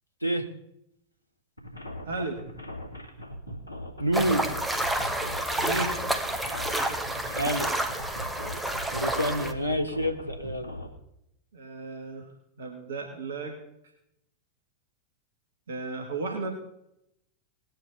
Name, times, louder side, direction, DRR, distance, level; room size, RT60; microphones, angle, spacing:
sound 1, 1.6-10.9, equal, 90° right, 2.3 m, -40 dB
voice 1, 2.1-2.4 5.6-5.9 6.9-7.0 11.5-12.3 12.6-13.6 15.7-16.5, right 3 dB, 65° right, 2 dB, 1.9 m, -34 dB
voice 2, 4.0-4.5 7.3-7.7 8.9-10.7, equal, 85° left, 6 dB, 1.4 m, -28 dB
sound 2, 4.1-9.5, right 1 dB, 5° right, 1.3 m, -29 dB
19.0 x 8.9 x 4.2 m, 0.80 s
figure-of-eight pair, 90°, 0 cm